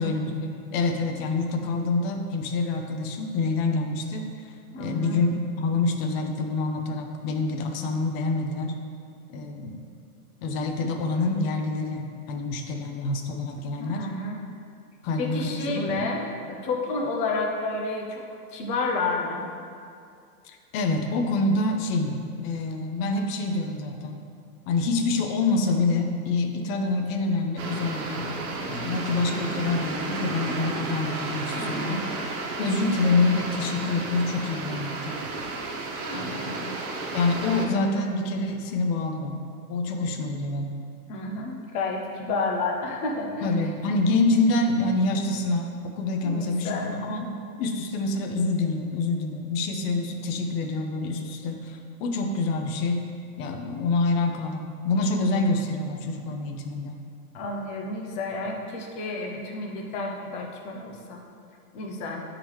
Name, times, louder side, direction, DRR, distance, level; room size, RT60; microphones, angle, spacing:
voice 1, 0.0-8.8 9.3-9.8 10.4-14.1 15.0-16.1 20.4-24.2 24.7-28.3 28.7-32.1 32.6-35.2 37.1-39.4 39.7-40.7 43.4-53.1 53.4-57.0, left 3 dB, 40° left, 3 dB, 0.7 m, -26 dB
voice 2, 4.7-5.3 13.8-14.4 15.2-18.2 18.5-19.4 31.6-32.0 36.1-36.7 41.1-43.6 46.2-47.0 57.3-61.2 61.7-62.2, left 3 dB, 20° left, 1 dB, 0.3 m, -30 dB
sound 1, 27.6-37.7, right 3 dB, 70° right, 1.2 m, -33 dB
9.7 x 3.8 x 3.1 m, 2.4 s
hypercardioid pair, 135°, 45 cm